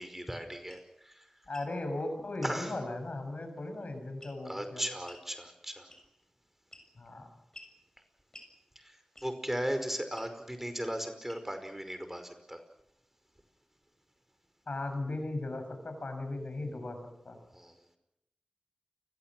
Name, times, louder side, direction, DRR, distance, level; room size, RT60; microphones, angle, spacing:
voice 1, 0.0-1.3 2.4-2.8 4.4-5.9 8.8-12.6 17.5-17.8, equal, 10° right, 8 dB, 5.1 m, -37 dB
sound 1, 0.7-0.9 1.4-1.7 2.4-2.6 4.2-4.5 5.1-5.3 5.9-6.2 6.7-7.1 7.5-7.8 8.3-8.5 9.2-9.5 10.1-10.3 11.3-11.6, left 1 dB, 25° left, 7.0 m, -52 dB
voice 2, 1.5-4.8 7.0-7.3 14.7-17.0 17.3-17.4, left 2 dB, 70° left, 6 dB, 6.8 m, -37 dB
29.5 x 21.5 x 6.2 m, 0.82 s
wide cardioid pair, 50°, 2 cm